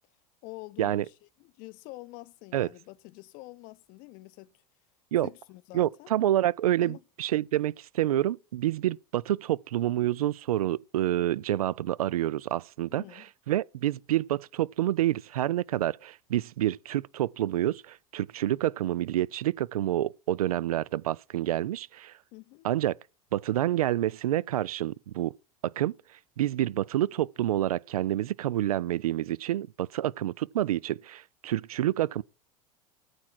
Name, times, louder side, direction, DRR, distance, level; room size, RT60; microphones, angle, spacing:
voice 1, 0.4-1.1 1.4-4.5 5.2-6.1 6.8-7.0 12.9-13.3 22.3-22.7, left 21 dB, 50° left, 0.7 m, -46 dB
voice 2, 5.7-22.1 22.6-22.9 23.3-25.3 25.8-26.0 26.4-32.2, right 13 dB, 70° right, 0.4 m, -28 dB
13.5 x 4.6 x 5.8 m
figure-of-eight pair, 80°, 19 cm